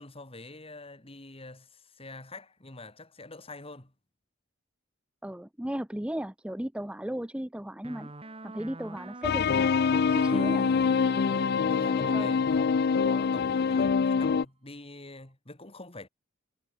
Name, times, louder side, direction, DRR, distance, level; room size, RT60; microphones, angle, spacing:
voice 1, 0.0-3.9 10.3-10.6 11.7-16.1, left 2 dB, 30° left, 3.4 m, -45 dB
voice 2, 5.2-8.1 8.4-10.7 12.1-12.3, right 1 dB, 5° right, 0.6 m, -36 dB
sound 1, 7.8-14.0, right 2 dB, 30° right, 1.8 m, -44 dB
sound 2, 9.2-14.5, left 5 dB, 55° left, 0.4 m, -25 dB
head